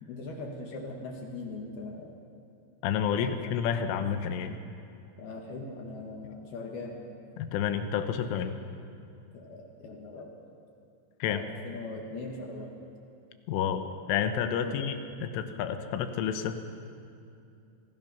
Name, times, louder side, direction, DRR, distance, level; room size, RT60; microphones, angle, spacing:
voice 1, 0.0-2.1 3.2-3.6 5.2-7.0 9.3-10.5 11.3-12.7 14.6-15.0, left 3 dB, 60° left, 1 dB, 3.3 m, -40 dB
voice 2, 2.8-4.6 7.4-8.5 11.2-11.4 13.5-15.0 15.2-16.6, left 8 dB, 85° left, 8 dB, 3.5 m, -30 dB
26.0 x 19.0 x 6.0 m, 2.6 s
omnidirectional pair, 5.6 m